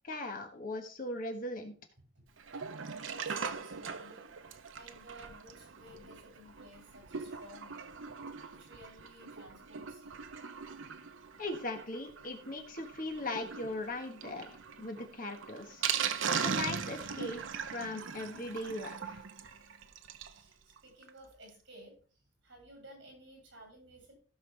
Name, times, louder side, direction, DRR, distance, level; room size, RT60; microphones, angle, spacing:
voice 1, 0.0-1.7 11.4-15.8 16.3-19.2, left 2 dB, 45° left, 5 dB, 1.4 m, -39 dB
voice 2, 2.0-2.3 3.1-10.3 20.3-24.1, equal, 60° right, 1 dB, 6.6 m, -55 dB
Sink (filling or washing), 2.4-20.4 20.8-20.9 21.0-21.1 21.5-21.6, right 6 dB, 80° right, 0.8 m, -40 dB
16.0 x 6.4 x 3.3 m, 0.40 s
head